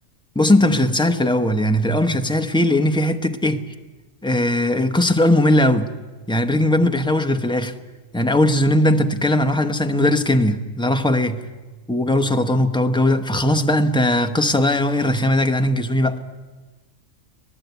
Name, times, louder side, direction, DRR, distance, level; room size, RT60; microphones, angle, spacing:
voice 1, 0.3-3.7 4.2-5.9 6.3-7.8 8.1-11.5 11.9-16.2, left 1 dB, 5° left, 0.8 m, -19 dB
26.0 x 18.0 x 8.3 m
omnidirectional pair, 1.4 m